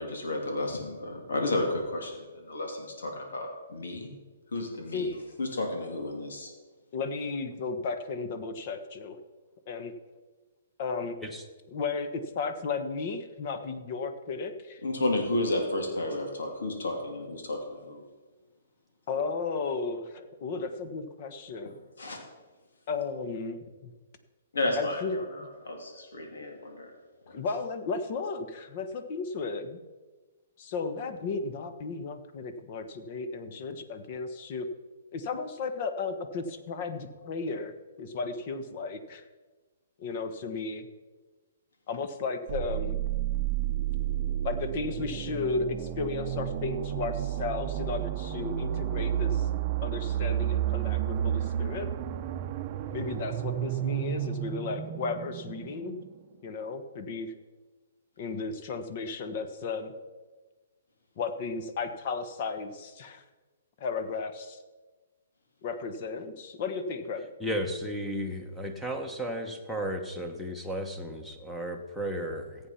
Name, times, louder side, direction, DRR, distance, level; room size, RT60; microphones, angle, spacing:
voice 1, 0.0-4.1 4.5-5.1 5.4-6.5 14.8-18.0 22.0-22.2 24.5-26.9 27.3-27.4, left 2 dB, 85° left, 2 dB, 2.9 m, -32 dB
voice 2, 6.9-9.2 9.7-9.9 10.8-11.1 11.7-14.8 19.1-21.7 22.9-23.9 24.8-25.5 27.3-29.8 30.6-34.7 35.1-37.7 38.0-39.2 40.0-40.9 41.9-43.0 44.4-49.5 49.8-51.9 52.9-56.0 56.4-57.3 58.2-59.9 61.2-63.2 63.8-64.6 65.6-67.3, left 4 dB, 40° left, 9 dB, 1.3 m, -34 dB
sound 1, 42.5-56.2, right 11 dB, 35° right, 0.7 m, -31 dB
voice 3, 67.4-72.7, equal, 5° left, 4 dB, 1.1 m, -34 dB
14.5 x 8.7 x 5.8 m, 1.3 s
hypercardioid pair, 155°, 0 cm